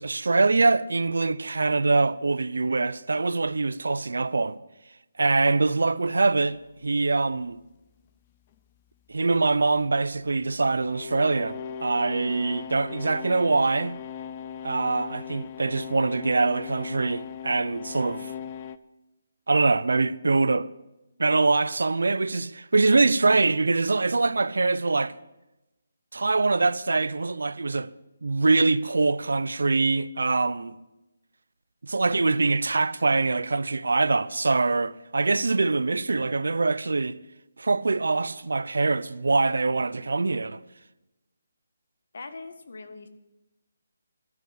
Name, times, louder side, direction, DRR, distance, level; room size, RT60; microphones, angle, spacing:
voice 1, 0.0-4.6 5.2-6.6 6.8-7.6 9.1-13.9 14.6-18.3 19.5-20.7 21.2-25.1 26.1-27.9 28.2-30.8 31.8-37.2 37.6-40.6, right 3 dB, 85° right, 0.7 m, -24 dB
sound 1, 6.5-18.8, left 8 dB, 25° left, 0.5 m, -39 dB
voice 2, 42.1-43.1, left 3 dB, 60° left, 1.6 m, -41 dB
12.5 x 9.9 x 8.1 m
hypercardioid pair, 170°, 0 cm